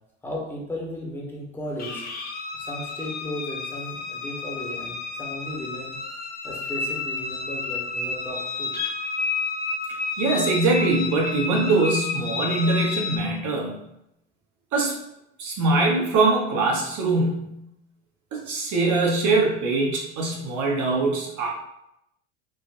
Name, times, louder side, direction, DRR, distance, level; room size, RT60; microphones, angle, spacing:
voice 1, 0.2-2.0 2.6-5.9 6.4-8.7, left 1 dB, 5° left, -4 dB, 1.1 m, -35 dB
sound 1, 1.8-13.2, left 4 dB, 25° left, 0.5 m, -31 dB
voice 2, 10.2-13.7 14.7-15.0 15.4-17.6 18.3-21.5, right 3 dB, 50° right, -1 dB, 1.2 m, -22 dB
3.7 x 2.4 x 2.6 m, 0.82 s
hypercardioid pair, 75°, 38 cm